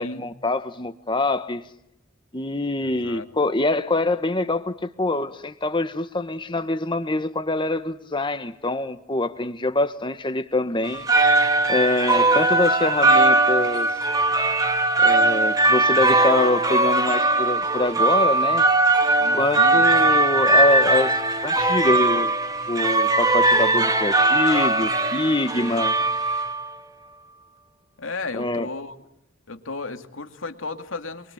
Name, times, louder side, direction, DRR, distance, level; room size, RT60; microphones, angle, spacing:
voice 1, 0.0-1.6 2.3-11.1 11.7-13.9 15.0-18.7 19.3-21.1 21.4-22.3 22.7-25.9 28.3-28.7, left 2 dB, 25° left, 1.4 m, -24 dB
sound 1, 10.8-26.7, right 2 dB, 20° right, 2.1 m, -20 dB
voice 2, 19.2-20.2 25.5-25.8 28.0-29.0 29.5-31.3, left 3 dB, 85° left, 2.5 m, -35 dB
27.5 x 23.5 x 8.8 m
head